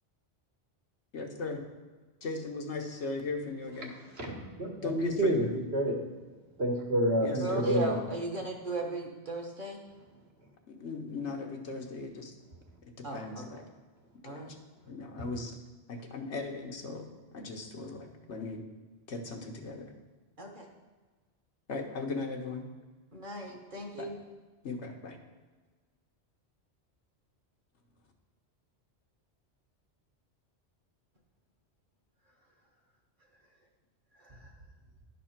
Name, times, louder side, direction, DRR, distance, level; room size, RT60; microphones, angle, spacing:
voice 1, 1.1-1.6 2.2-3.9 4.8-5.5 7.2-7.7 10.7-12.3 13.1-13.6 14.2-14.4 14.9-15.6 15.9-18.6 19.1-19.9 21.7-22.6 24.0-24.1 24.6-25.2, left 3 dB, 90° left, 2 dB, 1.4 m, -38 dB
voice 2, 4.3-5.4 5.7-6.0 6.6-8.0, right 1 dB, 70° right, 0 dB, 1.8 m, -28 dB
voice 3, 7.4-9.8 13.0-13.4 14.2-14.5 20.4-20.7 23.1-24.2 34.2-34.5, right 2 dB, 50° right, 1 dB, 1.5 m, -37 dB
11.0 x 4.2 x 5.8 m, 1.3 s
omnidirectional pair, 1.1 m